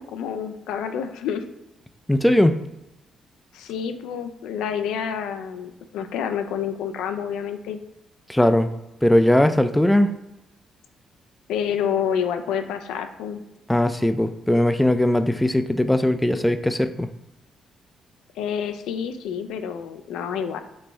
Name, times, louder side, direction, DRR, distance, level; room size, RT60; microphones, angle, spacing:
voice 1, 0.0-1.4 3.5-7.8 11.5-13.4 18.4-20.6, left 8 dB, 90° left, 8 dB, 0.4 m, -28 dB
voice 2, 2.1-2.6 8.3-8.7 9.0-10.1 13.7-17.1, left 1 dB, 5° left, 9 dB, 0.3 m, -19 dB
4.3 x 3.2 x 3.2 m, 0.90 s
cardioid pair, 90°, 0 cm